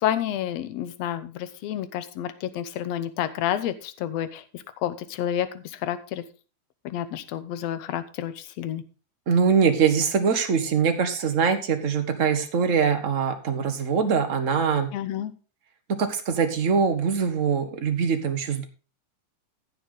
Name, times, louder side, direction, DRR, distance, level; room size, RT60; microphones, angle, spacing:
voice 1, 0.0-6.2 6.9-8.8 14.9-15.3, left 11 dB, 70° left, 12 dB, 2.0 m, -30 dB
voice 2, 9.3-14.9 16.0-18.6, right 6 dB, 70° right, 6 dB, 0.7 m, -23 dB
15.5 x 7.0 x 3.8 m, 0.34 s
omnidirectional pair, 3.4 m